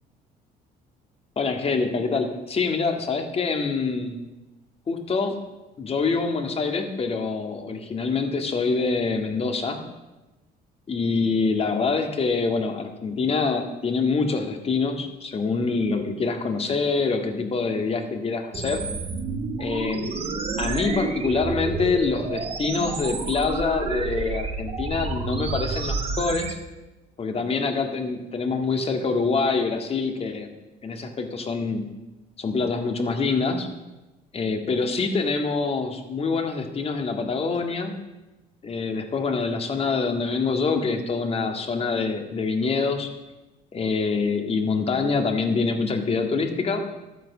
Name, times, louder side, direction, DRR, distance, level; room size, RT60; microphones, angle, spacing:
voice 1, 1.4-4.2 4.9-5.4 5.8-9.8 10.9-18.8 19.6-20.1 20.6-26.6 27.2-30.5 30.8-31.8 32.4-33.7 34.3-37.9 38.6-43.1 43.7-46.8, left 4 dB, 35° left, 5 dB, 2.0 m, -25 dB
sound 1, 18.5-26.5, right 4 dB, 35° right, 1.5 m, -30 dB
12.5 x 9.2 x 7.3 m, 1.1 s
cardioid pair, 110°, 17 cm